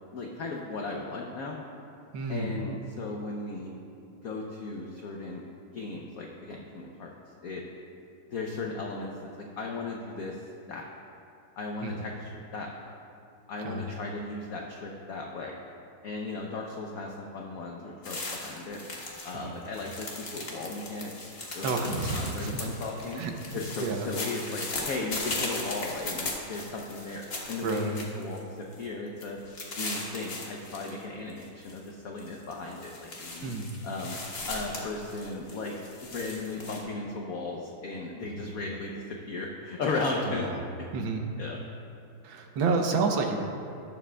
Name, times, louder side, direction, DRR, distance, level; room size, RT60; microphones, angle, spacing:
voice 1, 0.1-1.6 2.3-3.7 4.2-5.4 5.7-7.1 7.4-7.6 8.3-9.1 9.6-10.8 11.6-12.7 13.5-15.5 16.0-18.8 19.2-23.2 23.5-29.4 29.8-33.5 33.8-34.2 34.5-35.7 36.0-40.5 41.4-41.6, left 3 dB, 65° left, 0 dB, 0.9 m, -36 dB
voice 2, 2.1-2.6 11.8-12.0 13.6-13.8 19.3-19.6 21.6-22.7 23.1-24.1 27.6-28.0 33.4-33.7 38.3-38.6 40.3-40.6 40.9-41.2 42.2-43.4, right 3 dB, 75° right, 3 dB, 1.6 m, -30 dB
sound 1, 18.0-19.4 19.6-28.4 28.7-28.8 29.2-30.9 31.3-31.8 32.2-36.8, left 2 dB, 35° left, 1.2 m, -38 dB
18.5 x 7.3 x 2.3 m, 2.5 s
omnidirectional pair, 2.2 m